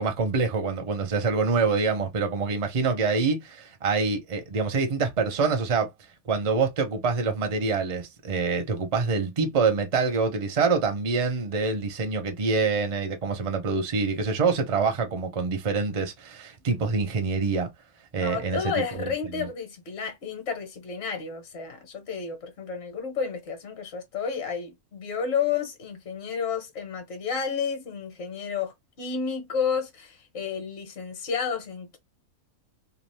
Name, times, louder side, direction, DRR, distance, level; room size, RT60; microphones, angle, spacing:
voice 1, 0.0-5.9 6.3-17.7 18.1-19.5, right 4 dB, 40° right, 0.5 m, -26 dB
voice 2, 18.2-32.0, left 6 dB, 55° left, 1.0 m, -31 dB
2.6 x 2.3 x 3.2 m
omnidirectional pair, 1.5 m